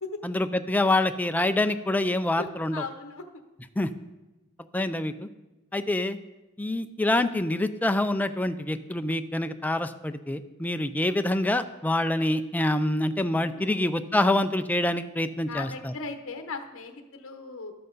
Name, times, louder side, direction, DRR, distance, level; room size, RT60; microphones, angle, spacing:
voice 1, 0.2-2.8 3.8-3.9 4.7-5.3 5.7-6.2 6.6-15.9, left 1 dB, 10° left, 9 dB, 0.4 m, -26 dB
voice 2, 2.4-3.2 10.8-10.9 13.3-13.8 15.5-17.7, left 4 dB, 65° left, 6 dB, 0.9 m, -38 dB
12.0 x 7.8 x 3.9 m, 1.1 s
head